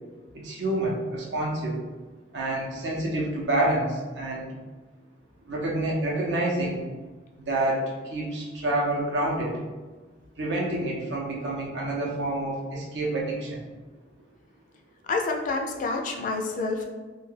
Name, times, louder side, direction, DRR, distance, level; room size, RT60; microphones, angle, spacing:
voice 1, 0.3-1.8 2.3-4.5 5.5-6.8 7.5-9.6 10.4-13.6, right 1 dB, 70° right, -2 dB, 0.6 m, -28 dB
voice 2, 15.1-16.8, left 3 dB, 45° left, 2 dB, 0.3 m, -28 dB
2.2 x 2.2 x 3.1 m, 1.3 s
head